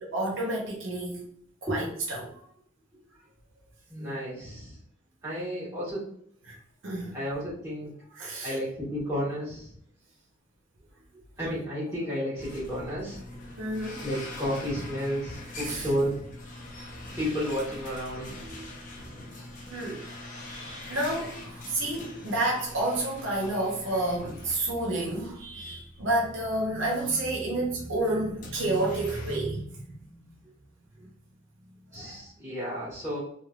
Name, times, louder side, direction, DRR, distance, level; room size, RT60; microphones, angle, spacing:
voice 1, 0.1-1.3 1.7-2.4 6.5-6.6 6.8-7.2 8.2-8.5 13.6-14.0 15.6-15.9 18.4-18.6 19.0-19.3 19.7-20.0 20.4-30.1 32.0-32.2, right 1 dB, 70° right, -2 dB, 0.7 m, -30 dB
voice 2, 3.9-4.8 5.2-6.0 7.1-7.9 8.4-9.7 11.4-13.2 14.0-16.3 17.2-18.3 31.9-33.2, equal, 15° right, -9 dB, 1.5 m, -32 dB
sound 1, 12.4-25.5 25.9-26.0 26.8-26.9 28.0-29.4, left 2 dB, 40° left, 0.6 m, -43 dB
3.2 x 2.6 x 2.4 m, 0.65 s
head